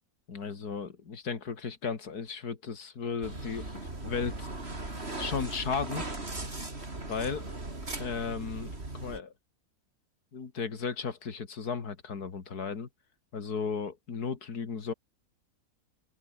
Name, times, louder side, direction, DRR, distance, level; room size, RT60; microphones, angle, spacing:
voice 1, 0.3-3.7 4.0-4.5 5.2-6.1 7.1-7.5 8.0-8.7 9.0-9.3 10.3-12.9 13.3-14.9, left 5 dB, 80° left, 2.7 m, -35 dB
sound 1, 3.2-9.2, right 2 dB, 40° right, 4.4 m, -38 dB
open air
omnidirectional pair, 1.6 m